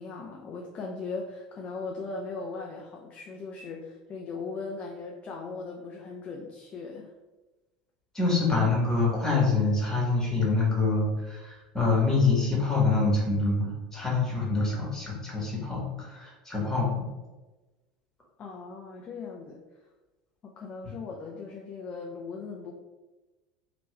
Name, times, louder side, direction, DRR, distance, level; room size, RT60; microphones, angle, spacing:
voice 1, 0.0-7.1 18.4-19.6 20.4-22.7, left 4 dB, 30° left, 0 dB, 0.4 m, -38 dB
voice 2, 8.1-17.0, left 3 dB, 10° left, -4 dB, 1.4 m, -26 dB
3.0 x 3.0 x 3.2 m, 1.2 s
figure-of-eight pair, 75°, 4 cm